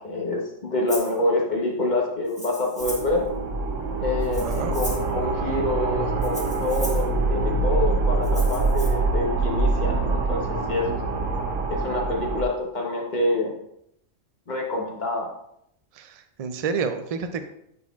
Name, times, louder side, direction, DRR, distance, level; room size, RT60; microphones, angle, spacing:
voice 1, 0.0-3.2 4.0-11.0 11.7-13.5 14.5-15.3, left 2 dB, 40° left, 0 dB, 1.2 m, -27 dB
Rattle (instrument), 0.9-1.1 2.3-3.2 4.2-5.1 6.2-7.1 8.2-8.9, equal, 5° left, 1.2 m, -37 dB
sound 1, 2.8-12.4, right 3 dB, 85° right, 1.1 m, -25 dB
voice 2, 4.4-4.7 16.0-16.1 16.4-17.4, right 5 dB, 60° right, 8 dB, 0.4 m, -29 dB
9.6 x 4.2 x 2.4 m, 0.75 s
omnidirectional pair, 1.3 m